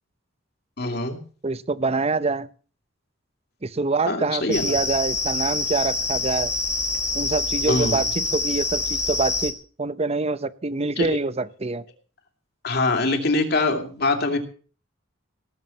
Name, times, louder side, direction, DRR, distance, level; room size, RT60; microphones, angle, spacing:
voice 1, 0.8-1.2 4.1-4.8 7.7-8.1 11.0-11.2 12.6-14.4, left 2 dB, 55° left, 5 dB, 2.9 m, -23 dB
voice 2, 1.4-2.5 3.6-6.5 7.1-11.8, right 3 dB, 30° right, 16 dB, 0.7 m, -25 dB
sound 1, 4.5-9.5, left 3 dB, 15° left, 2.0 m, -26 dB
18.0 x 7.3 x 7.3 m, 0.40 s
head